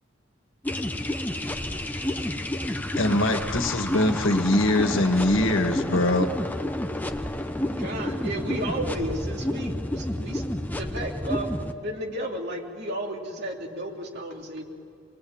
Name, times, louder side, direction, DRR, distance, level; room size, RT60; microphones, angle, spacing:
sound 1, 0.6-11.7, left 1 dB, 10° left, 1.0 m, -30 dB
voice 1, 1.4-3.0 7.2-7.8, right 2 dB, 80° right, 3 dB, 2.3 m, -54 dB
voice 2, 3.0-6.3, left 1 dB, 85° left, 4 dB, 2.0 m, -22 dB
voice 3, 7.8-10.4 10.7-14.6, right 1 dB, 60° right, 0 dB, 3.3 m, -33 dB
26.0 x 21.0 x 8.9 m, 2.3 s
head